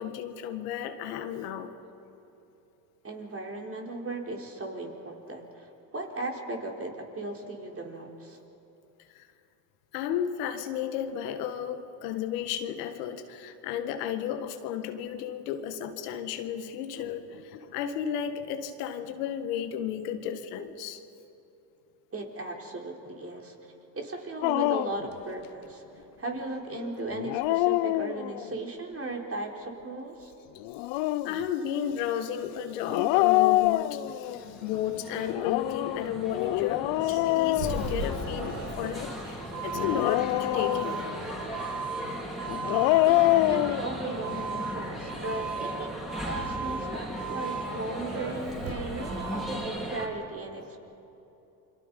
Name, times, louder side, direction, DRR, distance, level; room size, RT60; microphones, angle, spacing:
voice 1, 0.0-1.7 9.1-9.3 9.9-21.0 26.0-26.1 30.8-41.1, left 9 dB, 85° left, 8 dB, 1.6 m, -33 dB
voice 2, 3.0-8.4 22.1-23.6 23.9-25.8 26.2-30.3 43.1-50.8, right 2 dB, 30° right, 1 dB, 4.1 m, -37 dB
Dog, 24.4-25.1 27.1-28.5 30.6-31.4 32.9-34.4 35.3-38.5 39.7-41.1 42.5-43.8, left 17 dB, 65° left, 0.7 m, -25 dB
sound 1, 34.2-50.1, equal, ahead, 4.9 m, -38 dB
Doorbell, 36.8-49.6, right 4 dB, 90° right, 5.1 m, -37 dB
28.5 x 23.5 x 5.3 m, 3.0 s
hypercardioid pair, 70°, 46 cm